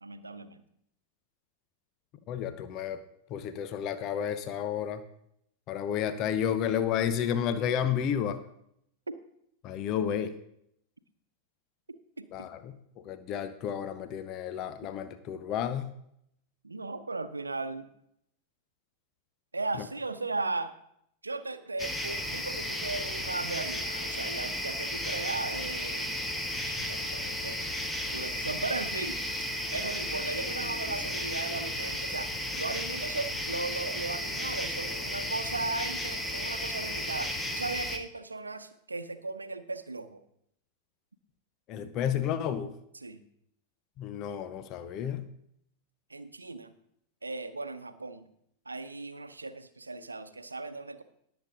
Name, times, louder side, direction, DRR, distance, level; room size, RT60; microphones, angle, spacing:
voice 1, 0.0-0.6 12.2-12.5 16.6-17.9 19.5-20.7 21.2-26.3 26.6-27.6 28.1-29.2 29.7-32.3 32.6-40.2 43.0-43.2 46.1-46.7 47.2-48.3 48.7-51.0, right 3 dB, 80° right, 11 dB, 0.8 m, -37 dB
voice 2, 2.3-3.0 3.3-5.0 5.7-8.4 9.6-10.3 12.3-12.8 13.0-15.9 41.7-42.7 44.0-45.3, left 9 dB, 40° left, 11 dB, 0.8 m, -31 dB
sound 1, 21.8-38.0, left 1 dB, 5° left, 1.3 m, -34 dB
18.5 x 7.0 x 3.8 m, 0.73 s
figure-of-eight pair, 90°, 0 cm